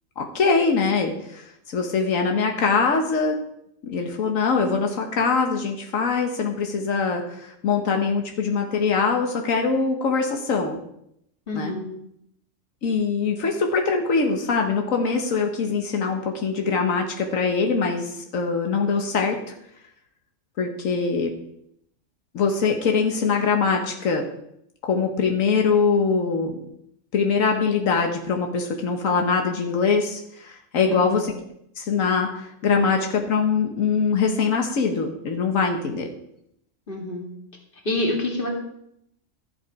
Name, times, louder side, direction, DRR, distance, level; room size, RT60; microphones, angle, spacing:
voice 1, 0.2-3.4 3.8-10.8 11.5-11.7 12.8-19.5 20.6-21.3 22.3-24.3 24.8-26.6 27.1-31.3 31.8-36.1, left 5 dB, 90° left, 3 dB, 1.5 m, -23 dB
voice 2, 11.5-11.9 30.9-31.2 36.9-37.3 37.8-38.5, left 1 dB, 40° left, 0 dB, 2.4 m, -27 dB
13.0 x 8.0 x 4.8 m, 0.77 s
omnidirectional pair, 1.3 m